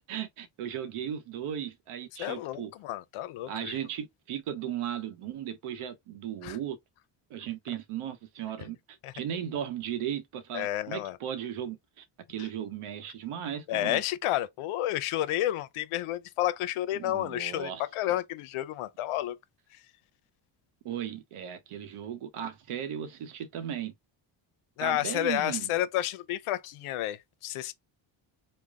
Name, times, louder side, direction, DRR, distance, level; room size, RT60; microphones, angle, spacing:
voice 1, 0.1-2.7 3.5-6.8 7.3-14.0 16.9-17.8 20.8-23.9 24.8-25.7, right 9 dB, 85° right, 0.9 m, -36 dB
voice 2, 2.2-3.8 6.4-6.6 9.0-9.1 10.5-11.2 13.7-19.4 24.8-27.7, left 13 dB, 85° left, 0.6 m, -31 dB
3.4 x 2.1 x 3.5 m
cardioid pair, 90°, 49 cm